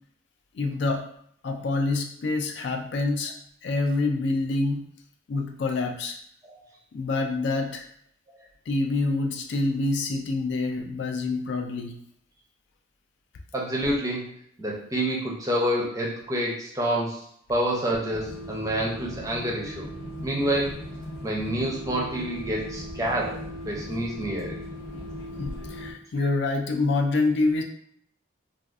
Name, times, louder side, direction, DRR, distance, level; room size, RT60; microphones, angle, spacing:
voice 1, 0.5-1.0 1.4-3.3 3.6-4.8 5.3-6.2 6.9-7.9 8.7-12.0 25.4-27.6, left 3 dB, 55° left, 4 dB, 0.3 m, -26 dB
voice 2, 13.5-14.3 14.6-17.2 17.5-19.8 20.2-20.7 21.2-24.6, right 1 dB, 15° right, -3 dB, 0.5 m, -28 dB
sound 1, 18.1-25.9, equal, 85° left, 0.8 m, -38 dB
2.5 x 2.4 x 3.4 m, 0.65 s
head